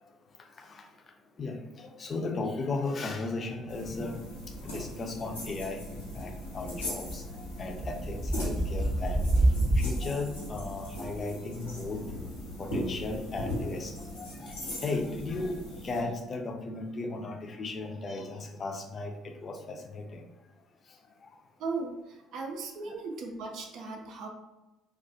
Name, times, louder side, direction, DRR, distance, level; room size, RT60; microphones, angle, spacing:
voice 1, 1.4-4.2 4.6-7.2 7.6-9.2 9.8-12.0 12.6-13.9 14.2-14.5 14.8-15.6 15.8-19.1 19.4-20.2, left 3 dB, 40° left, 3 dB, 0.4 m, -35 dB
sound 1, 3.7-16.0, left 1 dB, 90° left, 0.7 m, -39 dB
sound 2, 3.9-4.0 4.2-5.0 5.3-11.2 12.3-13.8 15.4-15.5, right 1 dB, 15° right, 0.7 m, -30 dB
voice 2, 21.6-24.3, right 4 dB, 60° right, 2 dB, 0.5 m, -37 dB
2.4 x 2.2 x 2.7 m, 1.0 s
figure-of-eight pair, 50°, 0 cm